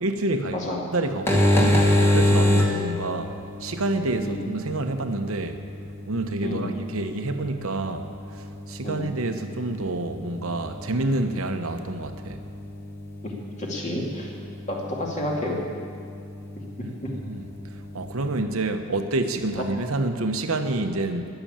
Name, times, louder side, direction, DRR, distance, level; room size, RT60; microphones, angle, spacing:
voice 1, 0.0-0.6 0.9-3.3 3.6-5.6 6.1-8.1 8.3-12.4 16.8-17.4 17.9-21.3, right 2 dB, 75° right, 6 dB, 1.0 m, -28 dB
voice 2, 0.5-0.9 3.9-4.4 6.4-6.8 8.8-9.1 13.2-13.3 13.6-14.3 14.7-15.6 17.0-17.1, left 1 dB, 35° left, -2 dB, 2.6 m, -31 dB
sound 1, 1.1-18.4, left 1 dB, 10° left, 1.8 m, -28 dB
20.5 x 6.9 x 8.8 m, 2.4 s
head